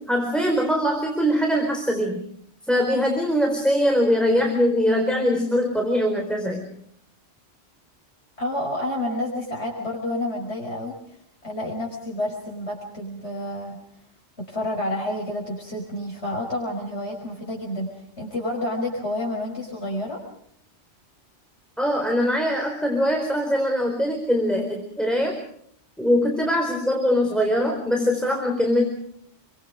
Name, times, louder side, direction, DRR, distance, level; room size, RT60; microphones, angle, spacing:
voice 1, 0.0-2.2 2.7-6.7 21.8-25.4 26.0-28.9, equal, ahead, 2 dB, 4.3 m, -22 dB
voice 2, 8.4-11.2 11.4-13.8 14.4-20.2, left 1 dB, 80° left, -1 dB, 5.7 m, -29 dB
29.5 x 23.5 x 5.0 m, 0.68 s
omnidirectional pair, 1.1 m